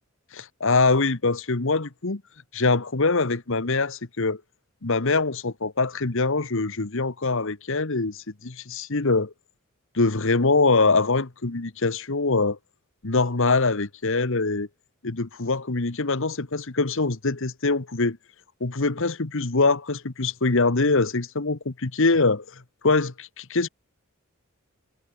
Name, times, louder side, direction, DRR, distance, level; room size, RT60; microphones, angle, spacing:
voice 1, 0.3-2.2 2.5-4.4 4.8-9.3 9.9-12.6 13.0-14.7 15.0-18.2 18.6-22.4 22.8-23.7, left 3 dB, 60° left, 1.3 m, -23 dB
head